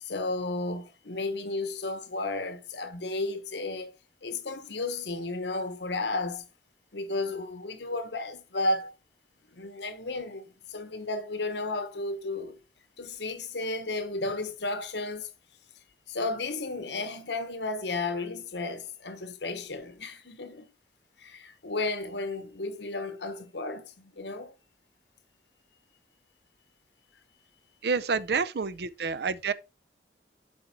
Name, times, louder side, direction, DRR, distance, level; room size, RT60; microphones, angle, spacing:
voice 1, 0.0-3.9 4.2-6.4 6.9-8.9 9.5-12.6 13.0-15.3 16.1-20.6 21.2-24.5, left 2 dB, 80° left, 1.2 m, -33 dB
voice 2, 27.8-29.5, right 5 dB, 65° right, 0.5 m, -28 dB
7.8 x 4.6 x 4.3 m
head